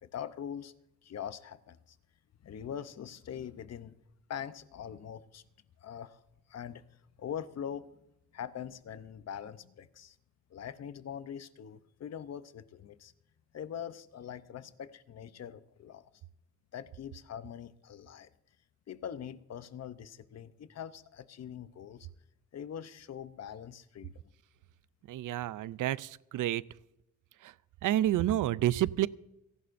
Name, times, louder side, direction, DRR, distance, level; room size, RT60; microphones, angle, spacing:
voice 1, 0.0-0.7 1.0-2.0 2.4-3.9 4.3-5.4 5.8-6.2 6.5-6.8 7.2-8.0 8.3-10.2 10.5-13.1 13.5-16.0 16.7-18.3 18.9-22.1 22.5-24.1, left 8 dB, 55° left, 13 dB, 0.8 m, -43 dB
voice 2, 25.1-26.6 27.4-27.5 27.8-29.1, right 13 dB, 85° right, 18 dB, 0.5 m, -29 dB
29.5 x 11.0 x 2.6 m, 0.85 s
wide cardioid pair, 155°, 31 cm